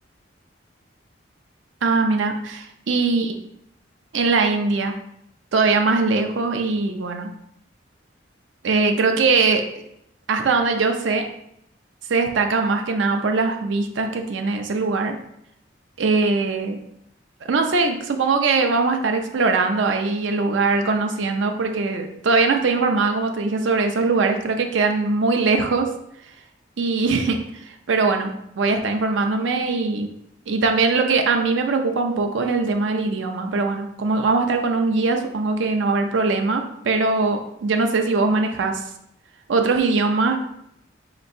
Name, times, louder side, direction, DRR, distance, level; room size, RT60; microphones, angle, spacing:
voice 1, 1.8-3.3 4.1-5.0 5.5-7.3 8.6-9.6 10.3-11.3 12.1-15.2 16.0-16.8 17.5-25.9 26.8-30.1 30.5-38.9 39.5-40.4, right 3 dB, 80° right, 5 dB, 0.5 m, -21 dB
4.3 x 2.9 x 2.6 m, 0.77 s
head